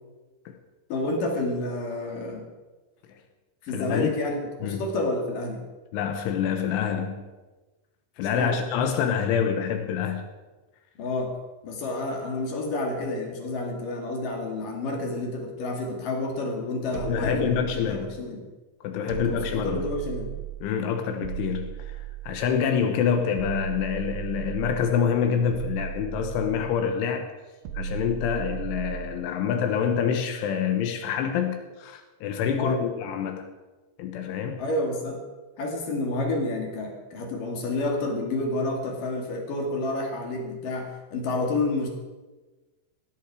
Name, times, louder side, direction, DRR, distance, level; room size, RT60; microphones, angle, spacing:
voice 1, 0.9-2.5 3.6-5.7 8.3-8.6 11.0-11.4 11.6-17.6 17.9-18.5 19.2-20.3 32.5-32.8 34.6-35.2 35.6-41.9, left 2 dB, 50° left, 3.2 m, -29 dB
voice 2, 3.7-4.1 4.6-4.9 5.9-7.2 8.2-10.3 16.9-18.2 18.8-19.8 20.6-27.3 27.7-33.5 34.0-34.6, left 7 dB, 75° left, 3.3 m, -26 dB
sound 1, 16.9-18.3 19.1-20.7 21.2-22.6 23.4-25.0 25.5-26.9 27.7-29.3, right 10 dB, 75° right, 3.6 m, -36 dB
18.5 x 14.0 x 4.9 m
omnidirectional pair, 5.9 m